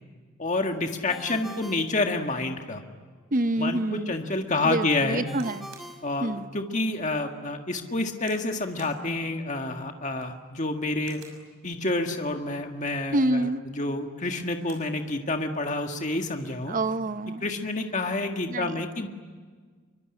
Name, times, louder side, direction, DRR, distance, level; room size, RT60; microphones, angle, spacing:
voice 1, 0.4-2.8 3.6-5.2 6.0-11.2 11.6-16.8 17.4-19.1, left 2 dB, 35° left, 4 dB, 1.8 m, -28 dB
Ringtone, 1.1-2.8 5.3-6.9, equal, ahead, 1.1 m, -45 dB
voice 2, 3.3-4.1 4.6-5.7 6.2-6.5 13.1-13.6 16.7-17.4 18.5-18.7, right 1 dB, 40° right, 11 dB, 0.8 m, -27 dB
sound 1, 5.3-5.9 6.5-6.6 7.1-7.3 8.2-8.5 8.8-9.0 10.0-10.4 11.0-11.4 12.7-13.1 14.2-14.9 15.3-15.4 15.6-16.2 17.0-17.3, right 6 dB, 60° right, 6.3 m, -53 dB
25.0 x 24.0 x 10.0 m, 1.5 s
head